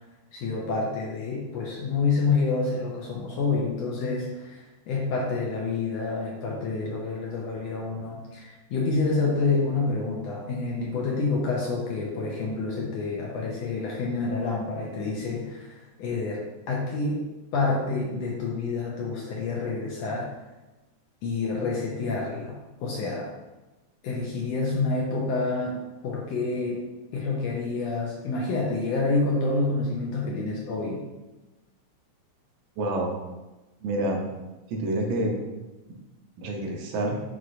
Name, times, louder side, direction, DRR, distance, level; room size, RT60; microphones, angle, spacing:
voice 1, 0.3-17.2 17.5-20.3 21.2-23.3 24.0-25.8 26.0-26.8 27.1-31.0, left 3 dB, 80° left, -2 dB, 1.6 m, -28 dB
voice 2, 32.8-33.2 33.8-34.3 34.7-35.4 36.4-37.2, right 1 dB, 80° right, 1 dB, 2.0 m, -28 dB
6.0 x 3.0 x 2.5 m, 1.1 s
omnidirectional pair, 3.4 m